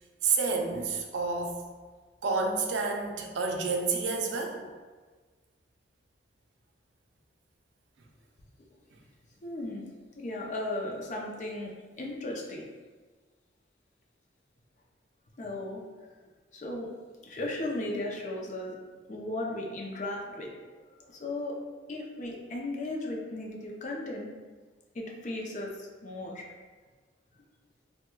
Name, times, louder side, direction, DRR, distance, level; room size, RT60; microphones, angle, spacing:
voice 1, 0.2-1.6 2.2-4.6, right 4 dB, 80° right, 2 dB, 0.4 m, -29 dB
voice 2, 9.4-9.8 10.2-11.7 12.0-12.6 15.4-15.8 16.5-16.9 17.2-18.8 19.1-20.5 21.0-21.5 21.9-24.3 24.9-26.4, left 1 dB, 40° left, -1 dB, 0.5 m, -36 dB
4.3 x 2.1 x 2.2 m, 1.4 s
head